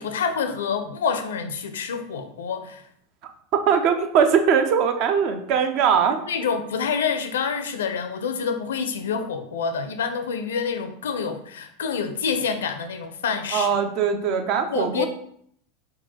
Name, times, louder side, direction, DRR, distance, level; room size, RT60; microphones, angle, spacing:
voice 1, 0.0-2.8 6.3-13.8 14.7-15.1, left 6 dB, 70° left, 8 dB, 0.4 m, -27 dB
voice 2, 3.5-6.2 13.5-15.1, right 7 dB, 50° right, 7 dB, 0.5 m, -21 dB
5.2 x 2.2 x 2.8 m, 0.66 s
figure-of-eight pair, 85°, 0 cm